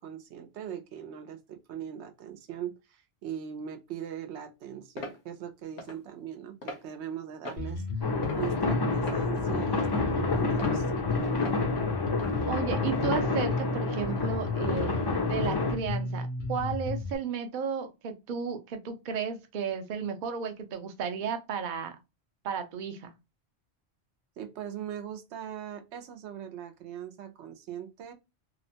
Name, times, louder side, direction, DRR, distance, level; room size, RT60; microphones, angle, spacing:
voice 1, 0.0-8.0 8.3-10.9 24.4-28.1, right 9 dB, 85° right, 0.9 m, -40 dB
sound 1, 5.0-5.2 5.8-6.0 6.6-6.8 7.4-7.7 8.2-8.6 9.0-9.2 9.8-10.0 10.6-10.8 11.4-11.6 12.2-12.4, left 1 dB, 80° left, 1.1 m, -40 dB
Bass guitar, 7.6-17.2, left 2 dB, 60° left, 0.7 m, -33 dB
sound 2, 8.0-15.8, left 3 dB, 40° left, 0.3 m, -29 dB
voice 2, 12.5-14.9 15.3-22.0 22.4-23.1, right 6 dB, 55° right, 0.6 m, -33 dB
2.9 x 2.1 x 2.7 m
omnidirectional pair, 1.1 m